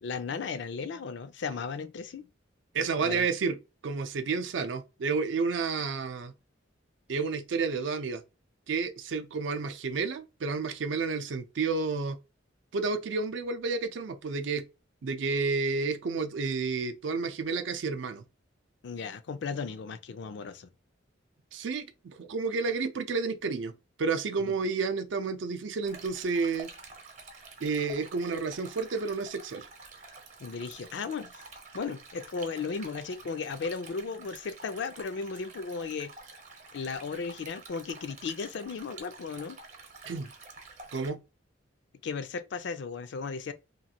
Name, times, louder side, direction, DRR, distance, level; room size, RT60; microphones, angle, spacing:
voice 1, 0.0-2.3 3.0-3.3 18.8-20.7 24.4-24.5 30.4-31.4 31.7-36.1 36.7-39.6 42.0-43.5, left 5 dB, 65° left, 0.4 m, -35 dB
voice 2, 2.7-3.6 3.8-6.3 7.1-8.2 8.7-12.2 12.7-14.6 15.0-18.2 21.5-23.7 24.0-26.7 27.6-29.7 40.1-40.3 40.9-41.2, right 4 dB, 70° right, 0.4 m, -30 dB
Stream, 25.8-41.1, right 3 dB, 40° right, 0.7 m, -49 dB
3.1 x 2.4 x 2.8 m
head